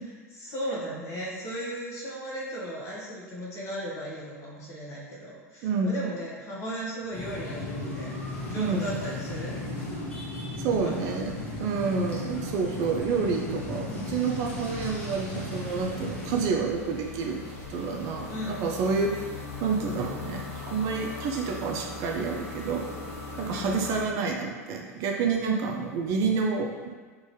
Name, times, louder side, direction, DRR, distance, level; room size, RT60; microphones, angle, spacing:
voice 1, 0.3-8.1 8.4-9.6 10.8-11.0 18.3-18.7 23.5-23.7, equal, 35° left, -6 dB, 1.1 m, -36 dB
voice 2, 5.6-5.9 8.6-8.9 10.6-11.3 11.6-22.8 23.4-26.9, right 5 dB, 40° right, 1 dB, 0.4 m, -29 dB
sound 1, 7.0-7.6 7.8-24.0, left 3 dB, 65° left, 0.9 m, -42 dB
sound 2, 7.1-16.5, left 2 dB, 15° left, 1.2 m, -36 dB
3.7 x 2.5 x 3.0 m, 1.4 s
figure-of-eight pair, 85°, 9 cm